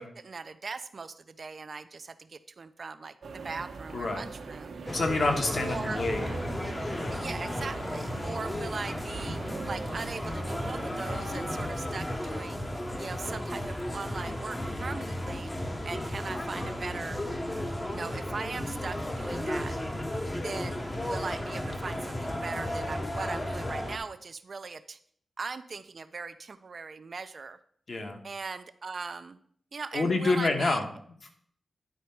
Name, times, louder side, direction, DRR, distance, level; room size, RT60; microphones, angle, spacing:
voice 1, 0.0-4.7 5.6-6.0 7.1-9.4 9.7-12.6 13.0-15.5 15.8-17.2 17.9-19.8 20.4-25.0 25.4-27.6 28.2-29.4 29.7-30.8, right 4 dB, 45° right, 11 dB, 0.4 m, -39 dB
sound 1, 3.2-11.7, right 4 dB, 90° right, 1.0 m, -42 dB
voice 2, 3.9-4.2 4.9-6.2 7.0-7.2 8.2-8.3 27.9-28.2 29.9-30.8, left 3 dB, 50° left, 3 dB, 1.2 m, -28 dB
sound 2, 4.9-24.0, left 1 dB, 15° left, 0.8 m, -34 dB
10.0 x 4.2 x 5.7 m, 0.62 s
wide cardioid pair, 160°, 0 cm